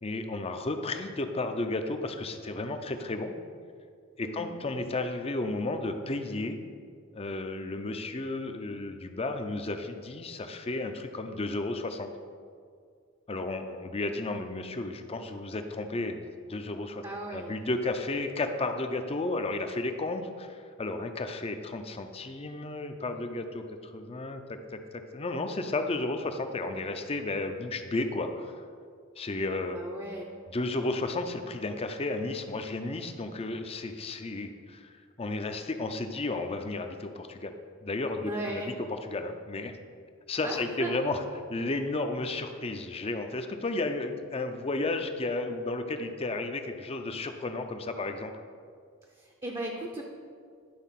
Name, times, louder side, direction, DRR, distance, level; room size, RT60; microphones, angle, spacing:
voice 1, 0.0-3.3 4.2-6.6 7.1-12.1 13.3-16.2 16.5-17.0 17.3-24.8 25.1-28.5 29.2-29.8 30.5-34.9 35.2-37.5 37.8-38.6 39.1-39.8 40.3-41.2 41.5-48.3, left 2 dB, 30° left, 7 dB, 0.5 m, -33 dB
voice 2, 4.2-4.6 17.0-17.5 29.7-30.2 38.2-38.8 40.4-40.9 49.1-50.0, right 1 dB, 20° right, 0 dB, 0.6 m, -36 dB
11.0 x 4.0 x 5.7 m, 2.2 s
head